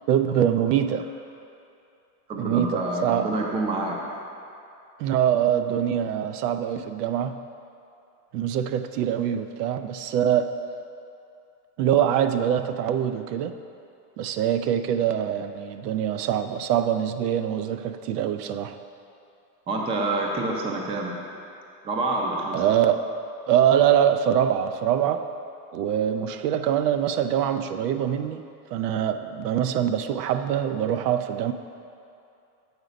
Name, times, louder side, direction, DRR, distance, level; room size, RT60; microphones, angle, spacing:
voice 1, 0.1-1.1 2.4-3.3 5.0-7.4 8.3-10.5 11.8-13.6 14.2-18.8 22.5-23.1 23.5-25.3 25.7-28.4 28.7-31.5, right 9 dB, 75° right, 9 dB, 0.5 m, -24 dB
voice 2, 2.3-4.0 19.7-21.2 21.8-22.6, right 2 dB, 15° right, 0 dB, 0.4 m, -27 dB
8.1 x 4.0 x 5.1 m, 2.6 s
supercardioid pair, 130°, 48 cm